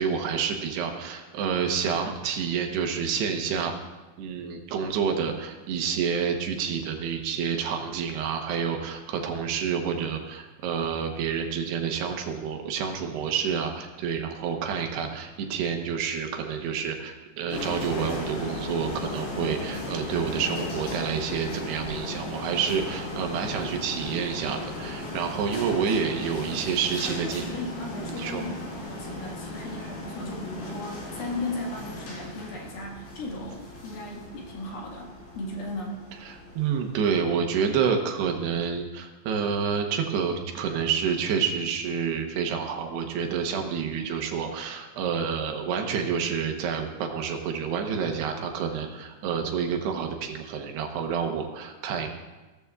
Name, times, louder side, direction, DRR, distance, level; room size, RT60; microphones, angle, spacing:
voice 1, 0.0-3.7 4.2-27.4 27.9-28.4 36.2-52.1, right 6 dB, 75° right, 4 dB, 2.9 m, -28 dB
sound 1, 17.5-37.2, left 2 dB, 90° left, 5.9 m, -36 dB
voice 2, 27.0-36.0, left 2 dB, 60° left, -1 dB, 3.3 m, -36 dB
17.5 x 14.0 x 2.4 m, 1.2 s
omnidirectional pair, 5.2 m